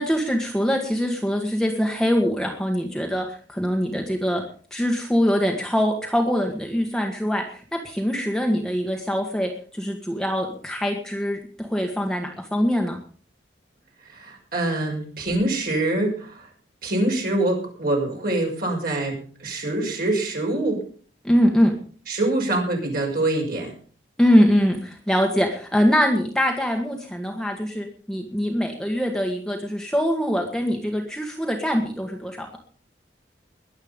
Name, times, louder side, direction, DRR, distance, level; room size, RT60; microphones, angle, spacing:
voice 1, 0.0-4.4 4.7-13.0 21.2-21.7 24.2-32.6, equal, 5° left, 2 dB, 1.6 m, -23 dB
voice 2, 14.1-16.5 16.8-20.8 22.1-23.7, right 2 dB, 55° right, 0 dB, 6.0 m, -25 dB
21.5 x 8.1 x 5.3 m, 0.44 s
head